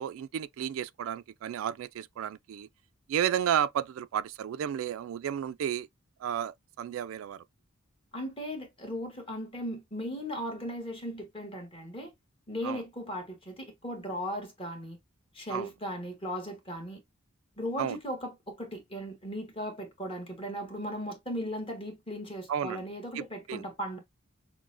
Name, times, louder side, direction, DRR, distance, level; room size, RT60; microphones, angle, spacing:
voice 1, 0.0-2.7 3.1-5.9 6.2-7.4 12.6-12.8 15.5-15.7 17.8-18.0 22.5-22.8 23.2-23.3 23.5-23.7, right 9 dB, 80° right, 0.3 m, -32 dB
voice 2, 8.1-12.1 12.5-15.0 15.3-17.0 17.6-24.0, equal, 25° left, 1.3 m, -37 dB
5.9 x 2.1 x 2.5 m
head